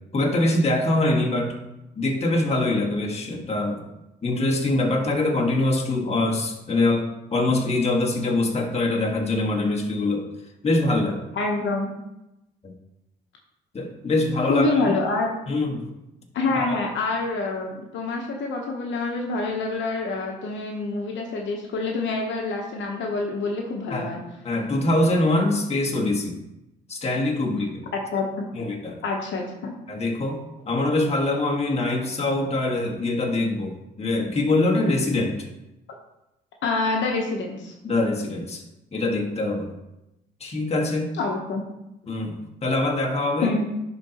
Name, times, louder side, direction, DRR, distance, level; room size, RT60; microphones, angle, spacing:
voice 1, 0.1-1.5 2.0-3.8 4.2-10.3 10.6-11.2 12.6-12.7 13.7-14.7 15.5-15.8 16.5-16.8 23.9-24.1 24.4-26.4 26.9-27.7 28.5-29.0 29.9-35.5 37.8-38.6 38.9-39.7 40.4-41.1 42.1-43.5, left 2 dB, 30° left, 0 dB, 1.5 m, -24 dB
voice 2, 11.4-11.9 14.5-15.3 16.3-24.2 27.9-28.5 29.0-29.8 36.6-37.7 41.1-41.6 43.4-43.6, left 3 dB, 70° left, 1 dB, 1.0 m, -26 dB
11.0 x 3.9 x 2.9 m, 0.92 s
cardioid pair, 90°, 20 cm